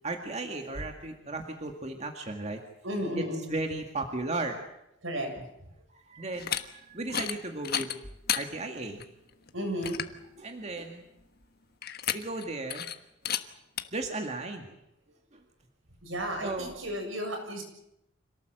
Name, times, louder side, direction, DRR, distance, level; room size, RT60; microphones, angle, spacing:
voice 1, 0.0-2.6 3.2-4.6 5.4-5.5 5.9-8.0 8.4-9.0 10.4-11.0 12.1-12.9 13.9-14.7 15.3-15.4 16.4-16.7, right 2 dB, 35° right, 3 dB, 2.1 m, -35 dB
voice 2, 2.8-3.5 5.0-5.3 9.5-10.0 16.0-17.6, equal, 85° right, 4 dB, 7.2 m, -33 dB
sound 1, 6.3-6.6 7.0-7.4 7.6-8.4 9.0-9.1 9.5-9.6 9.8-10.2 11.8-12.4 12.7-12.9 13.2-13.4 13.8-13.9, left 9 dB, 50° left, 1.3 m, -31 dB
26.5 x 18.0 x 7.8 m, 0.84 s
head